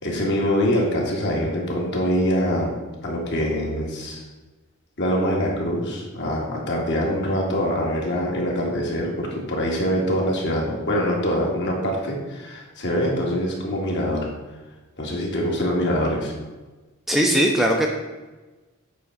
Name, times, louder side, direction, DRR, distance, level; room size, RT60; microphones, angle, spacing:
voice 1, 0.0-2.7 3.0-4.2 5.0-14.3 15.0-16.3, equal, 55° left, -2 dB, 1.9 m, -24 dB
voice 2, 17.1-17.9, right 1 dB, ahead, 0 dB, 0.6 m, -19 dB
8.4 x 3.8 x 5.8 m, 1.2 s
head